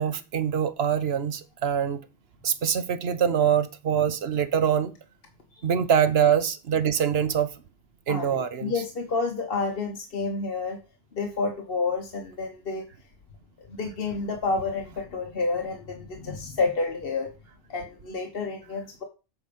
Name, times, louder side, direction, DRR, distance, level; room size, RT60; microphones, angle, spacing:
voice 1, 0.0-2.0 2.4-4.9 5.6-7.5 8.1-8.7, right 8 dB, 65° right, 1.0 m, -24 dB
voice 2, 8.1-10.8 11.1-12.9 13.6-17.3 17.7-19.0, left 3 dB, 55° left, 1.3 m, -29 dB
7.9 x 4.9 x 5.3 m
omnidirectional pair, 1.2 m